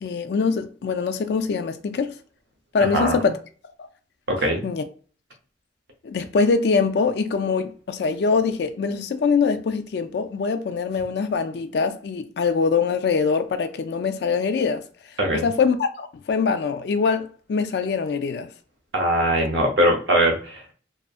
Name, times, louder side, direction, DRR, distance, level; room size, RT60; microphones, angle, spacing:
voice 1, 0.0-2.1 2.7-3.4 3.8-3.9 4.6-4.8 6.0-14.8 15.4-18.5, left 5 dB, 60° left, 0.3 m, -23 dB
voice 2, 2.8-3.2 4.3-4.6 15.2-15.5 18.9-20.6, right 1 dB, 75° right, 0.7 m, -21 dB
2.6 x 2.4 x 2.4 m
head